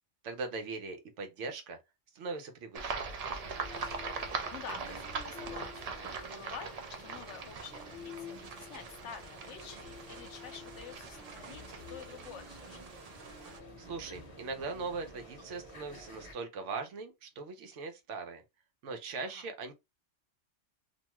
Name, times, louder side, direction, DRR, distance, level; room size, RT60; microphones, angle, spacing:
voice 1, 0.2-1.8 2.1-3.0 13.8-18.4 18.8-19.7, right 4 dB, 85° right, 1.0 m, -40 dB
sound 1, 2.7-13.6, right 5 dB, 60° right, 0.4 m, -42 dB
sound 2, 3.2-16.3, left 2 dB, 35° left, 0.8 m, -50 dB
voice 2, 4.2-12.9 19.2-19.5, left 7 dB, 75° left, 0.9 m, -49 dB
2.6 x 2.2 x 2.9 m
omnidirectional pair, 1.2 m